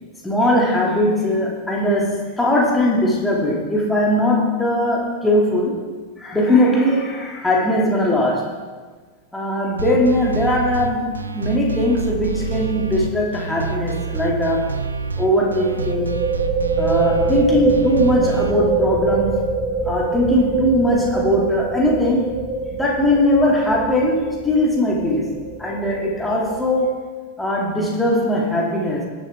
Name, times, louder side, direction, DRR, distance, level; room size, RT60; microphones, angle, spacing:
voice 1, 0.2-5.8 6.2-8.5 9.3-14.8 15.2-16.3 16.8-19.4 19.8-22.3 22.8-27.0 27.4-29.1, left 1 dB, 5° left, -4 dB, 2.1 m, -20 dB
sound 1, 9.8-18.5, right 4 dB, 75° right, 0.6 m, -27 dB
sound 2, 12.4-12.7 12.9-13.0 15.5-26.9, right 3 dB, 20° right, 1.1 m, -24 dB
19.0 x 7.2 x 3.4 m, 1.4 s
figure-of-eight pair, 90°, 0 cm